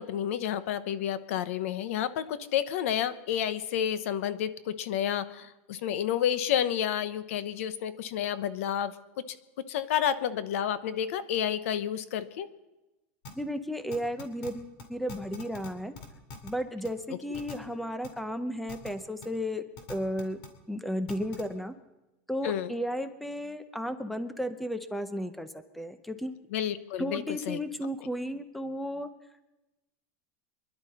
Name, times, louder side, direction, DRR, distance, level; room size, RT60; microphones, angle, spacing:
voice 1, 0.0-8.9 9.3-9.4 9.7-12.5 22.4-22.7 26.5-27.6, left 10 dB, 70° left, 13 dB, 1.0 m, -30 dB
sound 1, 13.2-13.3 13.9-14.5 14.8-14.9 15.1-15.7 15.9-16.5 16.8-16.9 17.3-17.5 18.0-18.1 18.7-18.9 19.2-19.3 19.8-20.5 21.1-21.4, left 3 dB, 50° left, 2.6 m, -42 dB
voice 2, 13.3-15.9 16.4-19.6 19.9-20.4 20.7-21.7 22.3-26.4 27.0-29.1, equal, ahead, 10 dB, 0.7 m, -34 dB
25.0 x 11.5 x 4.2 m, 1.0 s
supercardioid pair, 175°, 8 cm